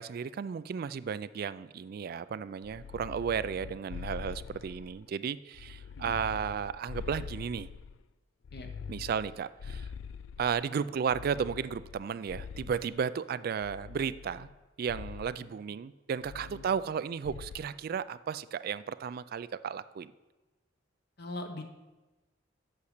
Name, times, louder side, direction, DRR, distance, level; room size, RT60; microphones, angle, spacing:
voice 1, 0.0-7.7 8.9-9.9 10.4-14.5 14.8-20.1, right 7 dB, 50° right, 15 dB, 0.3 m, -34 dB
sound 1, 2.6-5.1 5.5-8.0 8.4-10.6 11.1-13.0 13.6-14.6 14.9-15.4 16.2-17.0 17.2-17.7, left 6 dB, 80° left, 0.4 m, -44 dB
voice 2, 21.2-21.6, left 1 dB, 60° left, 5 dB, 1.1 m, -41 dB
8.4 x 6.5 x 6.6 m, 1.1 s
head